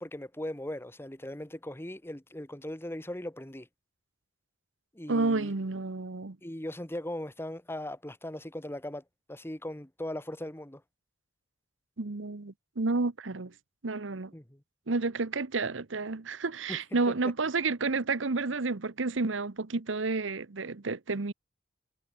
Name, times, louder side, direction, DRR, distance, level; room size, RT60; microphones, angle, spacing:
voice 1, 0.0-3.7 4.9-5.5 6.4-9.0 9.3-10.8 14.3-14.6 16.7-16.8, left 1 dB, 15° left, 1.7 m, -39 dB
voice 2, 5.1-6.4 12.0-13.5 13.8-14.3 14.9-21.3, right 3 dB, 80° right, 1.0 m, -30 dB
head